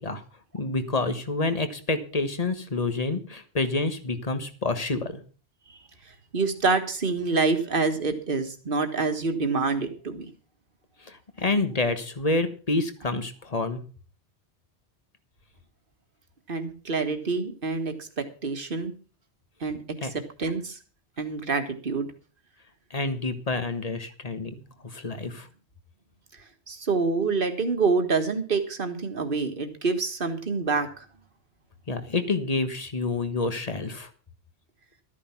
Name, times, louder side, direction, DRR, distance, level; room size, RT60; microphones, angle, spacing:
voice 1, 0.5-5.2 11.0-13.8 20.0-20.1 22.9-24.5 24.8-25.5 31.9-34.1, left 3 dB, 35° left, 10 dB, 1.5 m, -28 dB
voice 2, 6.3-10.3 16.5-18.9 19.6-20.8 21.2-22.1 26.7-31.1, right 4 dB, 50° right, 6 dB, 1.8 m, -27 dB
13.0 x 9.8 x 5.9 m, 0.37 s
omnidirectional pair, 1.1 m